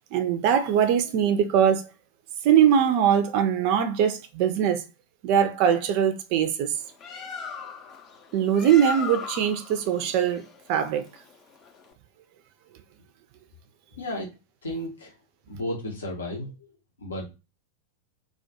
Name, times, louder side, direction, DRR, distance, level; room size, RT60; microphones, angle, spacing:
voice 1, 0.1-1.9 2.4-4.8 5.2-6.7 8.3-10.4 10.7-11.1, right 9 dB, 45° right, 0.3 m, -22 dB
Bird, 6.7-11.9, left 5 dB, 30° left, 0.5 m, -38 dB
voice 2, 14.0-14.3 14.6-15.1 15.5-16.5 17.0-17.3, left 1 dB, 70° left, 0.7 m, -33 dB
2.2 x 2.1 x 2.7 m
figure-of-eight pair, 90°, 0 cm